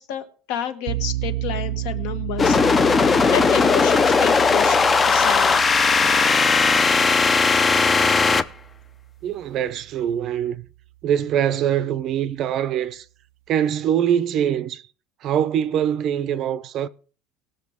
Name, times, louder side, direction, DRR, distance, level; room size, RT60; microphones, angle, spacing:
voice 1, 0.0-4.8 5.1-5.7, left 10 dB, 70° left, 1.4 m, -30 dB
sound 1, 0.9-9.7, right 16 dB, 85° right, 0.5 m, -33 dB
sound 2, 2.4-8.4, left 4 dB, 15° left, 0.4 m, -17 dB
voice 2, 9.2-10.6 11.0-13.0 13.5-14.8 15.2-16.9, right 9 dB, 35° right, 0.5 m, -23 dB
19.5 x 6.8 x 3.6 m
cardioid pair, 175°, 0 cm